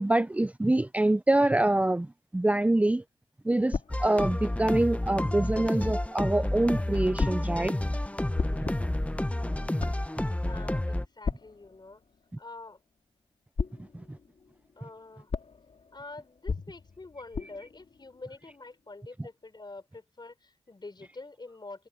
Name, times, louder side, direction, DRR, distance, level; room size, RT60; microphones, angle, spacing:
voice 1, 0.0-3.0 3.4-7.8 8.6-8.7 13.8-14.2, right 1 dB, 10° right, 0.4 m, -25 dB
sound 1, 3.7-5.6 7.2-13.2 13.6-19.0, left 5 dB, 70° left, 2.9 m, -39 dB
sound 2, 3.9-11.0, left 1 dB, 10° left, 0.9 m, -30 dB
voice 2, 8.5-8.8 10.4-12.0 12.4-12.8 14.8-15.3 15.9-21.9, left 3 dB, 40° left, 4.0 m, -46 dB
cardioid pair, 55°, 11 cm